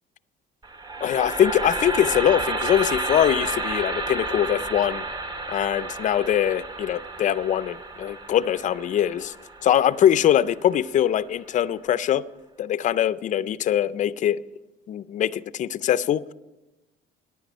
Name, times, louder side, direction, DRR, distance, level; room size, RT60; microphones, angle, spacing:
sound 1, 0.6-10.8, right 2 dB, 20° right, 0.7 m, -31 dB
voice 1, 1.0-5.0 5.5-9.3 9.6-12.2 12.6-14.4 14.9-16.2, left 10 dB, 40° left, 16 dB, 0.4 m, -22 dB
15.0 x 10.5 x 5.2 m, 1.0 s
cardioid pair, 155°, 20 cm